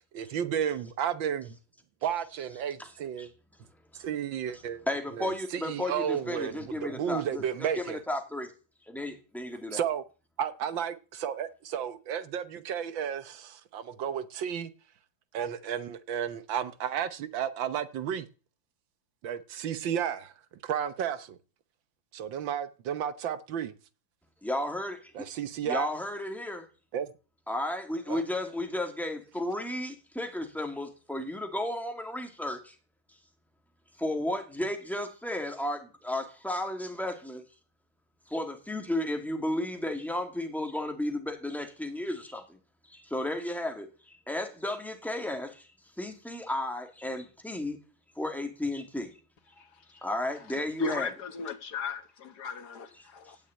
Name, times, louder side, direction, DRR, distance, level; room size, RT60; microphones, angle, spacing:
voice 1, 0.0-1.6 2.0-3.3 4.0-4.8 5.1-8.0 9.7-10.0 10.4-14.7 15.3-18.3 19.2-20.3 20.6-21.4 22.1-23.7 25.2-25.9 26.9-27.1 28.1-28.2, right 9 dB, 70° right, 1.7 m, -32 dB
voice 2, 4.9-8.5 8.9-9.8 24.4-25.1 25.6-26.7 27.5-32.7 34.0-37.4 38.3-42.6 42.9-45.7 46.0-47.8 48.2-49.1 49.9-51.1, left 1 dB, ahead, 2.3 m, -33 dB
voice 3, 49.6-50.0 50.5-53.4, left 5 dB, 55° left, 2.0 m, -37 dB
17.5 x 6.7 x 8.8 m
omnidirectional pair, 2.2 m